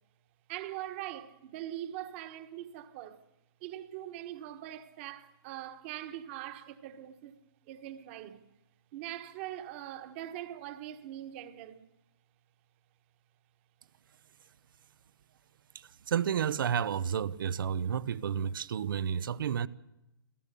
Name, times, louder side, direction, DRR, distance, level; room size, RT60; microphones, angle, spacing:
voice 1, 0.5-3.2 3.6-7.4 7.7-8.4 8.9-11.8, right 13 dB, 30° right, 1.4 m, -42 dB
voice 2, 15.7-19.7, right 8 dB, 60° right, 0.8 m, -31 dB
28.0 x 15.5 x 6.9 m
hypercardioid pair, 160°, 13 cm